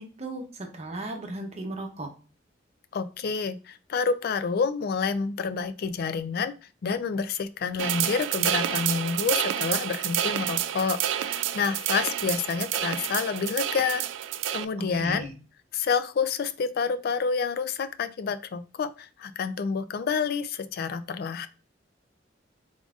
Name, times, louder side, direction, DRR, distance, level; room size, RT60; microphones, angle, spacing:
voice 1, 0.0-2.1 14.8-15.3, right 2 dB, 35° right, 2 dB, 0.8 m, -36 dB
voice 2, 2.9-6.5 6.8-14.0 14.5-15.3 15.7-21.5, left 5 dB, 55° left, 11 dB, 0.4 m, -28 dB
sound 1, 7.8-14.6, right 11 dB, 75° right, 0.3 m, -29 dB
3.8 x 3.6 x 2.4 m, 0.34 s
head